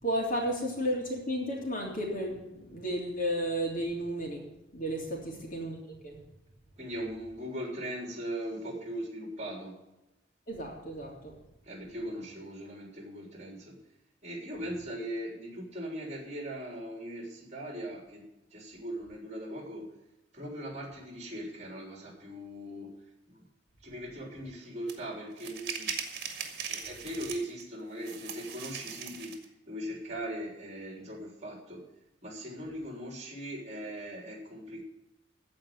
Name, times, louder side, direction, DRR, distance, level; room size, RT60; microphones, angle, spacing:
voice 1, 0.0-4.4 4.7-5.8 6.0-6.2 10.5-11.3, equal, 45° left, -1 dB, 3.2 m, -33 dB
voice 2, 6.8-9.8 11.6-13.8 14.2-18.2 18.5-19.9 20.3-22.9 23.3-23.4 23.8-25.9 26.7-29.3 29.7-31.8 32.2-34.8, equal, 35° right, 0 dB, 3.5 m, -39 dB
sound 1, 24.9-25.0 25.4-27.6 28.0-29.4, right 7 dB, 55° right, 1.9 m, -39 dB
15.0 x 5.1 x 9.2 m, 0.93 s
head